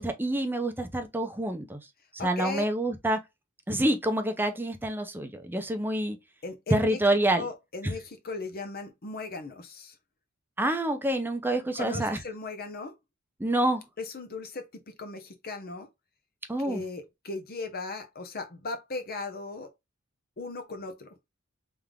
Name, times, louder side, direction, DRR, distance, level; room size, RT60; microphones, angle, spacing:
voice 1, 0.0-1.8 2.2-3.2 3.7-6.2 6.7-7.5 7.8-7.9 10.6-12.2 13.4-13.8 16.5-16.8, right 1 dB, 10° right, 0.7 m, -27 dB
voice 2, 2.2-2.6 6.4-7.0 7.3-10.0 11.7-12.9 14.0-15.9 16.6-19.7 20.4-21.1, left 3 dB, 45° left, 0.8 m, -37 dB
3.5 x 3.5 x 3.6 m
head